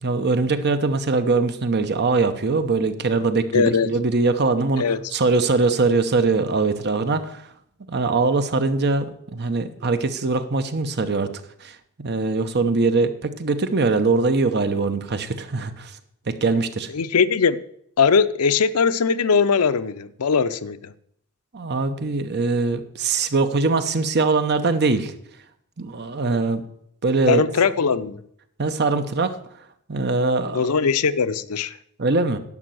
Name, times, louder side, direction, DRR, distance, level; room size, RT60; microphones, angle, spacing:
voice 1, 0.0-4.8 5.1-7.4 7.9-11.3 11.6-15.9 16.3-16.9 21.5-25.1 25.8-26.6 27.0-27.4 28.6-29.4 29.9-30.7 32.0-32.4, right 3 dB, 50° right, 1.0 m, -22 dB
voice 2, 3.5-3.9 4.8-5.0 16.9-17.6 18.0-20.9 27.3-28.2 30.5-31.8, left 5 dB, 75° left, 0.6 m, -20 dB
11.0 x 6.1 x 7.7 m
head